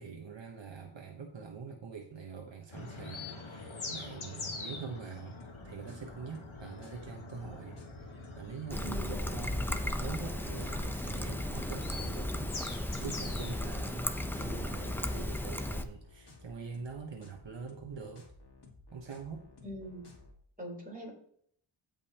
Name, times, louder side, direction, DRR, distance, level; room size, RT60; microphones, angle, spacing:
voice 1, 0.0-5.4 5.6-7.8 8.1-12.5 12.8-14.1 14.3-18.2 18.9-19.5, right 5 dB, 70° right, 2 dB, 1.1 m, -44 dB
sound 1, 2.7-15.3, left 3 dB, 85° left, 1.5 m, -45 dB
sound 2, 5.4-20.4, left 2 dB, 55° left, 2.0 m, -56 dB
Trickle dribble, 8.7-15.8, left 1 dB, 5° left, 0.7 m, -35 dB
voice 2, 8.8-9.3 19.6-20.1 20.6-21.1, equal, 20° right, -2 dB, 3.8 m, -42 dB
16.0 x 5.3 x 2.9 m, 0.65 s
wide cardioid pair, 60°, 47 cm